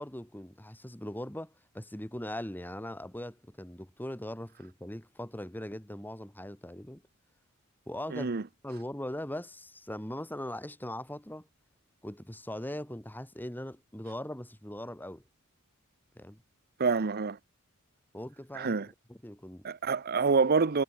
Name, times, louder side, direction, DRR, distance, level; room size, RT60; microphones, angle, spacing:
voice 1, 0.0-7.0 7.9-8.3 8.6-11.5 12.0-15.2 16.2-16.4 18.1-18.7 19.1-19.7, left 1 dB, 10° left, 2.3 m, -40 dB
voice 2, 8.1-8.4 16.8-17.4 18.5-18.9 19.6-20.8, right 4 dB, 45° right, 0.7 m, -27 dB
head